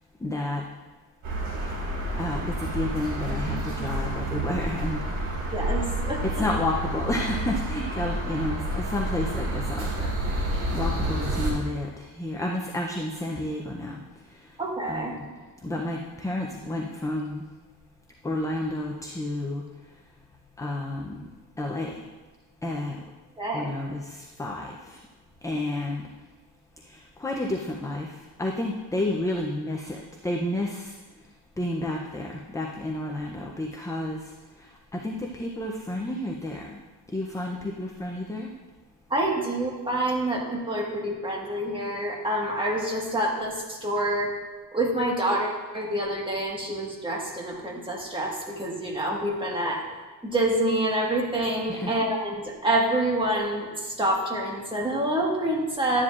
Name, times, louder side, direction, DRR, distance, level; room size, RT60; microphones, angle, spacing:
voice 1, 0.2-0.6 2.2-5.4 6.2-14.6 14.9-15.2 15.6-17.4 18.2-20.0 20.6-21.3 21.6-22.0 22.6-23.0 23.5-25.0 25.4-26.1 26.8-31.3 31.6-36.8 37.1-38.5 51.7-52.0, left 1 dB, 10° left, 0 dB, 0.4 m, -31 dB
sound 1, 1.2-11.5, right 1 dB, 60° right, 3.3 m, -29 dB
voice 2, 5.5-6.2 14.6-15.1 23.4-23.7 39.1-44.3 44.7-49.8 50.2-56.0, right 1 dB, 10° right, -2 dB, 1.5 m, -27 dB
12.0 x 9.8 x 2.4 m, 1.3 s
cardioid pair, 160°, 41 cm